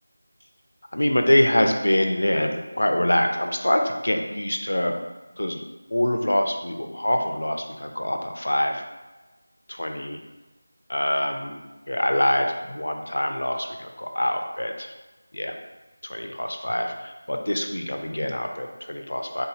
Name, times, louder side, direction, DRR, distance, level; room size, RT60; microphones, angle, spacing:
voice 1, 0.9-4.9 5.4-5.6 5.9-8.8 9.7-10.2 10.9-11.6 11.9-14.7 15.3-15.5 16.0-19.5, left 1 dB, 85° left, 4 dB, 0.4 m, -24 dB
3.8 x 2.7 x 2.8 m, 1.2 s
figure-of-eight pair, 175°, 0 cm